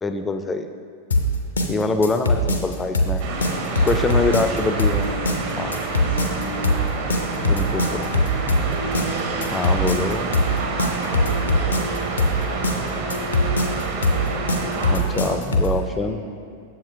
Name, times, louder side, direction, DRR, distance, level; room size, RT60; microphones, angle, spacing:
voice 1, 0.0-0.7 1.7-3.2 3.8-5.2 5.6-5.8 7.5-7.8 9.5-10.3 14.9-16.2, left 3 dB, 15° left, 8 dB, 0.4 m, -24 dB
sound 1, 1.1-15.8, left 1 dB, 75° left, 0.5 m, -21 dB
sound 2, 3.2-15.0, right 3 dB, 50° right, 0.7 m, -28 dB
voice 2, 3.7-4.2 6.5-8.1 9.0-9.8 10.5-13.1 14.5-16.2, right 2 dB, 70° right, -2 dB, 1.3 m, -37 dB
7.0 x 5.0 x 3.3 m, 2.3 s
figure-of-eight pair, 90°, 0 cm